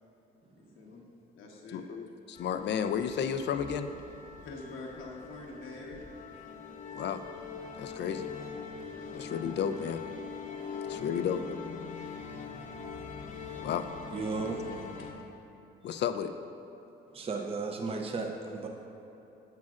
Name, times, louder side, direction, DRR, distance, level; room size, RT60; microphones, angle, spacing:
voice 1, 0.6-1.0 1.3-1.8 4.4-6.1 8.7-9.2 10.6-11.0 15.0-15.1, left 3 dB, 85° left, -1 dB, 1.2 m, -46 dB
voice 2, 1.7-3.9 6.9-7.2 7.7-8.3 9.1-10.0 10.9-11.4 13.6-13.9 15.8-16.4, left 8 dB, 60° left, 10 dB, 0.4 m, -32 dB
sound 1, 2.3-15.1, left 6 dB, 40° left, 0.9 m, -43 dB
voice 3, 14.1-14.6 17.1-18.7, right 4 dB, 30° right, 2 dB, 0.6 m, -34 dB
10.5 x 7.4 x 2.5 m, 3.0 s
cardioid pair, 90°, 20 cm